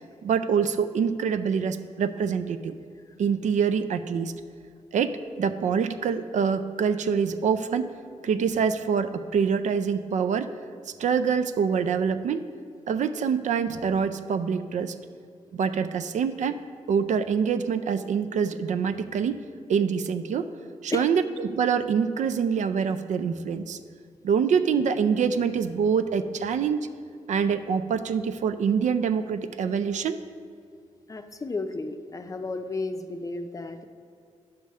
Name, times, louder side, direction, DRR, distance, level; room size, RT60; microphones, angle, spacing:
voice 1, 0.2-2.8 3.2-4.3 4.9-7.9 8.2-10.5 11.0-12.4 12.9-14.9 15.5-16.6 16.9-19.4 19.7-20.5 20.8-23.8 24.2-26.8 27.3-30.2, right 6 dB, 80° right, 10 dB, 0.4 m, -25 dB
voice 2, 31.1-33.8, left 3 dB, 25° left, 7 dB, 0.5 m, -33 dB
9.3 x 3.4 x 6.4 m, 2.2 s
cardioid pair, 95°, 12 cm